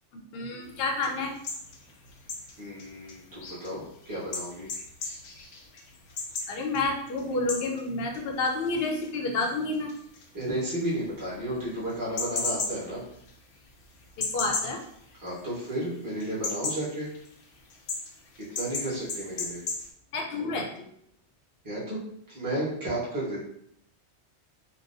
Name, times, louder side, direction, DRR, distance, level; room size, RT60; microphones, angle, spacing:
voice 1, 0.3-1.3 6.5-9.9 14.2-14.8 20.1-20.9, left 3 dB, 60° left, 1 dB, 0.8 m, -29 dB
sound 1, 0.6-15.8 16.1-19.9, left 3 dB, 90° left, 0.9 m, -37 dB
voice 2, 2.6-4.7 10.3-13.0 15.2-17.1 18.5-19.6 21.6-22.0 22.3-23.4, right 1 dB, 20° right, -9 dB, 1.1 m, -33 dB
3.8 x 2.3 x 2.6 m, 0.70 s
omnidirectional pair, 1.2 m